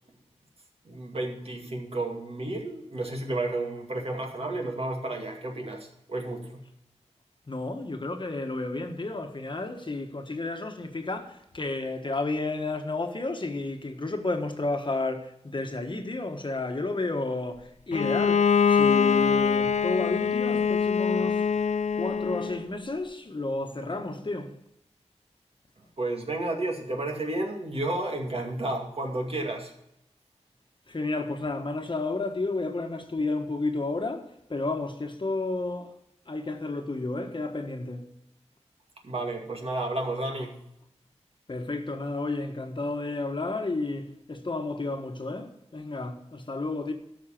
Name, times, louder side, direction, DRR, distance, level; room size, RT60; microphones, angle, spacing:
voice 1, 0.8-6.6 26.0-29.7 39.0-40.6, right 2 dB, 55° right, 2.2 m, -32 dB
voice 2, 7.5-21.5 21.9-24.5 30.9-35.9 36.3-38.1 41.5-46.9, left 2 dB, 45° left, 1.3 m, -31 dB
Bowed string instrument, 17.9-22.6, left 6 dB, 75° left, 0.5 m, -24 dB
13.0 x 5.7 x 7.4 m
wide cardioid pair, 80°, 12 cm